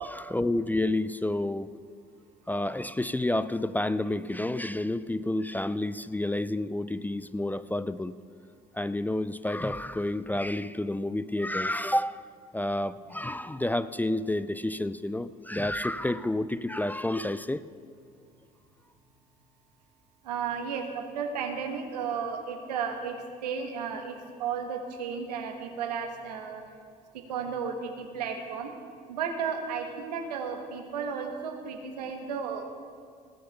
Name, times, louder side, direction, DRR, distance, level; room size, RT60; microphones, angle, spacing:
voice 1, 0.0-1.7 2.5-8.1 8.7-12.2 12.5-17.7, left 1 dB, 10° left, 15 dB, 0.4 m, -30 dB
voice 2, 20.2-26.6 27.1-28.7 29.1-32.6, right 6 dB, 85° right, 4 dB, 1.3 m, -34 dB
18.5 x 6.6 x 6.7 m, 2.2 s
hypercardioid pair, 55°, 20 cm